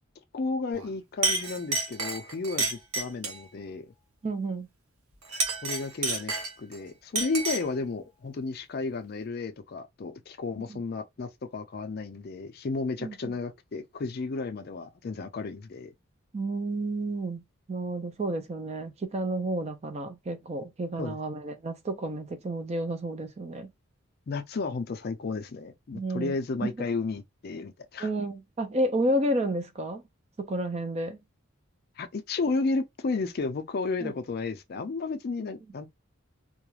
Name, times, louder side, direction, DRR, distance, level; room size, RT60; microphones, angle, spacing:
voice 1, 0.3-3.9 5.6-15.9 21.0-21.2 24.3-28.1 32.0-35.9, left 3 dB, 45° left, 0.4 m, -33 dB
Chink clink, 0.7-0.9 1.2-3.5 5.2-6.8 7.2-7.8, right 3 dB, 85° right, 0.9 m, -30 dB
voice 2, 4.2-4.7 10.7-10.8 13.0-13.3 16.3-17.4 17.7-23.7 25.9-26.3 26.6-26.7 28.0-30.0 30.4-31.2 34.0-34.1, right 1 dB, 30° right, 0.4 m, -31 dB
2.3 x 2.1 x 3.0 m
head